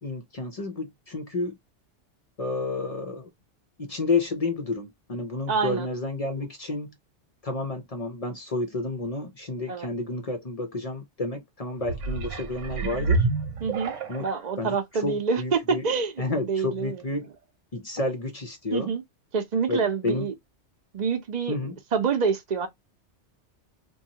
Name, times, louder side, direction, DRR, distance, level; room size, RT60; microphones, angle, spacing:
voice 1, 0.0-1.6 2.4-3.3 3.8-6.9 7.4-13.3 14.1-14.3 14.6-15.9 16.2-17.3 17.7-18.9 19.7-20.3 21.5-21.8, left 3 dB, 45° left, 0.5 m, -30 dB
voice 2, 5.5-5.9 9.7-9.9 13.6-13.9 14.2-16.1 16.4-17.0 18.7-19.0 19.3-20.3 20.9-22.7, right 5 dB, 45° right, 0.7 m, -27 dB
sound 1, 11.8-14.4 15.1-15.2, right 3 dB, 80° right, 1.1 m, -28 dB
2.6 x 2.3 x 2.8 m
omnidirectional pair, 1.2 m